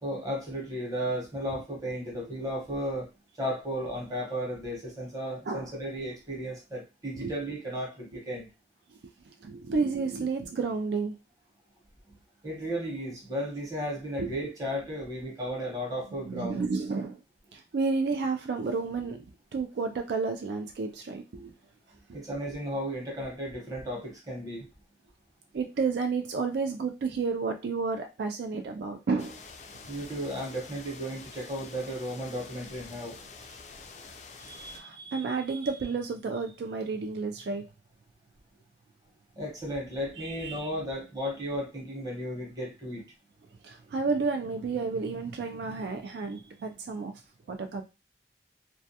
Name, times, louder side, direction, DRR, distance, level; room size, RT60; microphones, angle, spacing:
voice 1, 0.0-3.1 3.4-8.5 12.4-16.6 22.1-24.7 29.9-33.2 39.4-43.1, equal, 20° right, -2 dB, 0.9 m, -34 dB
voice 2, 9.2-11.2 14.2-14.4 16.2-17.2 17.5-19.3 19.5-21.5 22.1-22.2 25.5-29.4 33.5-33.6 34.4-37.7 40.2-40.7 43.6-47.1 47.5-47.8, right 4 dB, 75° right, 5 dB, 0.3 m, -31 dB
sound 1, 29.2-34.8, left 4 dB, 40° left, 0.3 m, -47 dB
2.2 x 2.2 x 2.7 m, 0.27 s
head